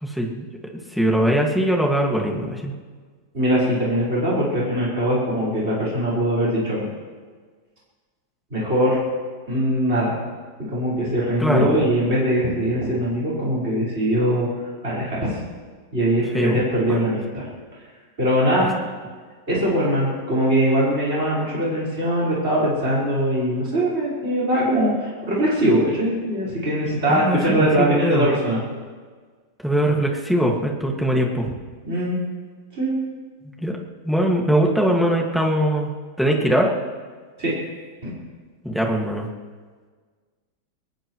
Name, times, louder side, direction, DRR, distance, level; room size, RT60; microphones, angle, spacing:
voice 1, 0.0-0.5 0.9-2.7 11.4-11.7 16.3-16.6 16.9-17.1 27.1-28.3 29.6-31.5 33.4-33.7 34.0-35.9 36.2-36.7 38.6-39.3, equal, ahead, -1 dB, 1.8 m, -21 dB
voice 2, 3.3-6.9 8.5-9.0 9.5-10.2 10.7-14.5 14.8-15.4 15.9-17.5 18.2-18.7 19.5-28.6 31.8-32.2 32.7-32.9 37.4-37.5 38.0-38.1, equal, 35° right, -7 dB, 5.3 m, -21 dB
22.5 x 20.0 x 3.2 m, 1.5 s
omnidirectional pair, 1.8 m